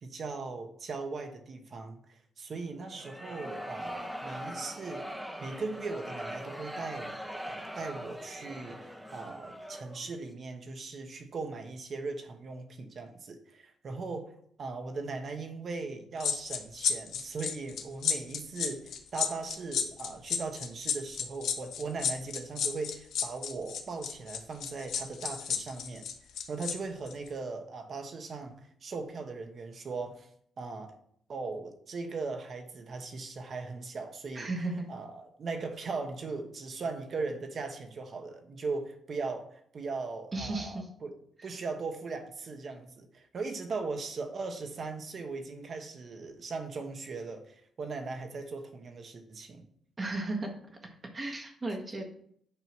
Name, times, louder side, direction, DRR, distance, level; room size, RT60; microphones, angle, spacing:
voice 1, 0.0-5.0 5.4-7.1 7.4-14.3 14.6-26.0 26.5-30.3 30.6-31.0 31.3-34.5 34.9-41.1 41.4-49.6, right 4 dB, 45° right, 1.1 m, -39 dB
sound 1, 2.9-10.1, equal, 5° right, 0.9 m, -41 dB
sound 2, 16.2-26.7 27.1-27.3, left 7 dB, 65° left, 0.9 m, -32 dB
voice 2, 34.3-34.9 40.3-40.9 41.4-41.5 50.0-50.5 51.1-52.1, right 2 dB, 25° right, 1.4 m, -34 dB
8.7 x 2.9 x 6.1 m
cardioid pair, 115°, 0 cm